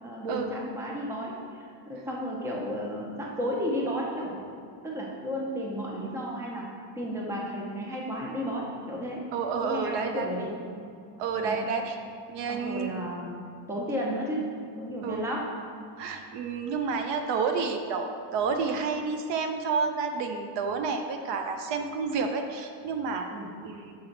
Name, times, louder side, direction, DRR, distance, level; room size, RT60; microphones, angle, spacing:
voice 1, 0.0-4.5 4.8-6.7 7.0-9.3 9.6-10.5 11.4-11.7 12.5-13.3 13.7-15.5 23.3-23.5, equal, 5° right, -2 dB, 0.6 m, -33 dB
voice 2, 9.3-10.3 11.2-12.0 12.3-12.9 15.0-15.2 16.0-23.3 23.6-23.9, right 5 dB, 60° right, 5 dB, 0.6 m, -30 dB
5.9 x 5.5 x 3.9 m, 2.3 s
cardioid pair, 150°, 49 cm